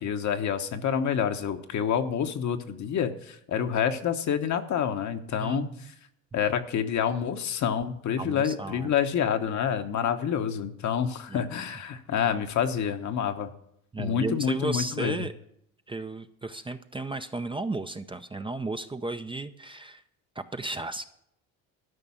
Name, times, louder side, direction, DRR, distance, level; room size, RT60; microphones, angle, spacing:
voice 1, 0.0-5.7 6.3-13.5 14.0-15.3, left 8 dB, 55° left, 7 dB, 1.1 m, -28 dB
voice 2, 5.4-5.9 8.2-8.9 11.3-11.5 13.9-15.3 15.9-20.0 20.4-21.1, right 2 dB, 15° right, 8 dB, 0.6 m, -34 dB
12.5 x 5.3 x 8.6 m, 0.74 s
supercardioid pair, 85°, 35 cm